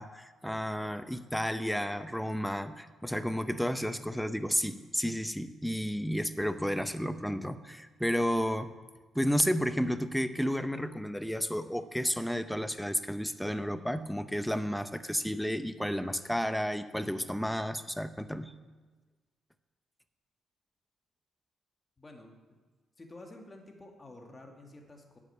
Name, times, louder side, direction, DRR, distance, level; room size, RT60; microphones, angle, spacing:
voice 1, 0.0-8.7 9.1-18.5, equal, ahead, 10 dB, 0.8 m, -32 dB
voice 2, 22.0-22.4 23.0-25.2, left 2 dB, 25° left, 2 dB, 2.2 m, -50 dB
10.0 x 8.4 x 8.5 m, 1.3 s
cardioid pair, 90°, 0 cm